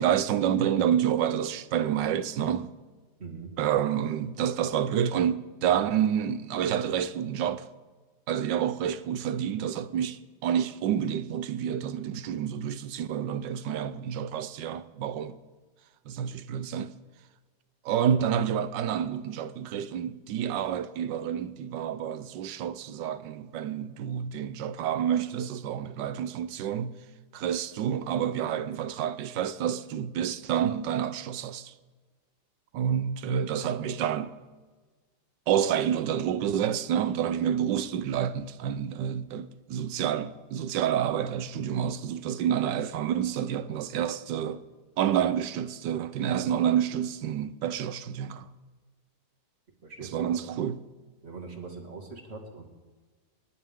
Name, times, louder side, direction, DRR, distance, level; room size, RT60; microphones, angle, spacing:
voice 1, 0.0-2.7 3.6-7.6 8.3-15.4 16.1-16.9 17.8-26.9 27.3-31.7 32.7-34.4 35.5-44.6 45.0-48.5 50.0-50.8, right 9 dB, 85° right, 1.4 m, -28 dB
voice 2, 3.2-3.5 49.8-50.5 51.2-52.6, right 4 dB, 35° right, 2.5 m, -42 dB
29.5 x 11.0 x 3.7 m
omnidirectional pair, 1.9 m